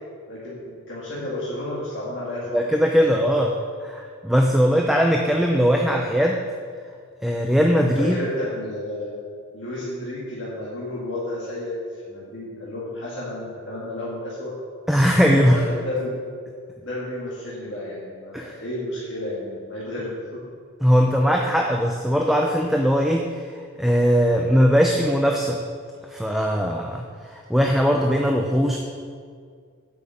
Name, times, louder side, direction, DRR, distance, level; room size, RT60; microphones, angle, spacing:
voice 1, 0.3-2.6 3.0-3.1 8.0-9.2 9.5-14.6 15.2-16.1 16.8-20.4, left 1 dB, 55° left, -7 dB, 2.0 m, -31 dB
voice 2, 2.5-3.5 3.8-6.4 7.2-8.2 14.9-15.6 18.3-18.6 20.8-25.6 26.1-28.8, equal, ahead, 1 dB, 0.4 m, -20 dB
7.8 x 5.7 x 7.7 m, 2.1 s
head